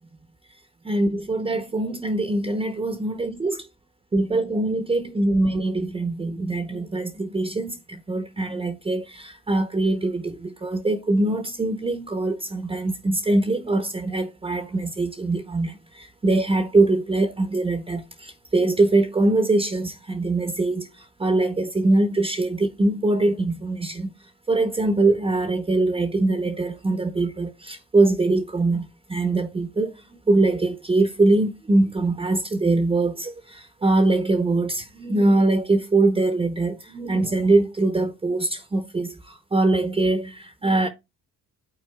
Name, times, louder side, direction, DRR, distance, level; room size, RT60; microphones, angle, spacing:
voice 1, 0.9-3.6 4.1-20.9 21.2-24.1 24.5-29.9 30.3-40.9, right 2 dB, 20° right, 0.7 m, -23 dB
12.0 x 4.2 x 2.3 m
cardioid pair, 90°, 30 cm